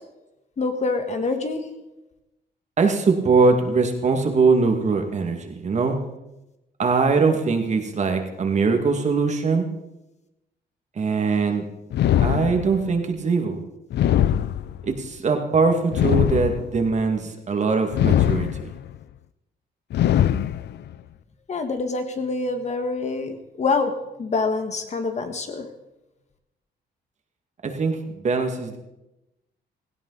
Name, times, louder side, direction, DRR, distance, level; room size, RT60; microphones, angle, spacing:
voice 1, 0.6-1.6 21.5-25.7, left 3 dB, 40° left, 6 dB, 1.7 m, -26 dB
voice 2, 2.8-6.0 6.8-9.7 11.0-11.6 12.2-13.6 14.8-18.7 27.6-28.8, right 4 dB, 40° right, 4 dB, 2.2 m, -22 dB
sound 1, 11.9-13.0 13.9-15.0 15.9-17.0 17.9-18.9 19.9-20.9, left 11 dB, 70° left, 0.6 m, -21 dB
17.0 x 16.5 x 4.1 m, 0.95 s
cardioid pair, 120°, 18 cm